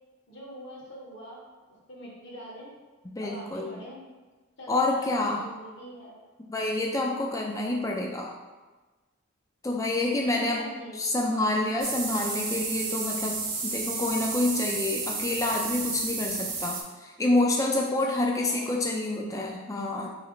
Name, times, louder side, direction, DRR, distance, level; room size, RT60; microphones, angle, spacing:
voice 1, 0.3-1.4 1.7-2.7 3.2-4.1 4.6-6.1 10.0-11.0 18.0-18.6, equal, 55° left, -4 dB, 0.8 m, -44 dB
voice 2, 3.1-3.8 4.7-5.4 6.5-8.3 9.6-10.6 11.0-20.1, left 2 dB, 15° left, 0 dB, 0.3 m, -28 dB
sound 1, 11.8-16.8, right 4 dB, 45° right, 0.6 m, -32 dB
3.2 x 2.9 x 3.7 m, 1.3 s
head